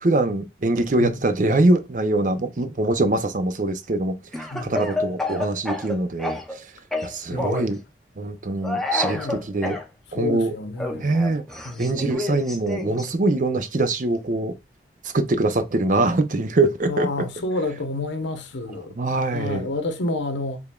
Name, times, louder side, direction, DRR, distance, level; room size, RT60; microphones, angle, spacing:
voice 1, 0.0-4.2 4.6-6.7 7.0-7.8 8.2-9.8 10.1-10.5 11.0-11.4 11.8-14.6 15.0-17.3 19.0-19.7, right 2 dB, 45° right, 0.5 m, -23 dB
Speech / Cough, 4.3-6.6 6.9-7.7 8.6-9.8 10.8-13.1, left 2 dB, ahead, 0.6 m, -29 dB
voice 2, 4.5-4.9 7.3-7.7 9.1-9.4 10.2-11.1 11.6-12.0 16.9-18.9 19.3-20.6, left 2 dB, 80° left, 0.9 m, -29 dB
5.0 x 3.4 x 2.3 m
head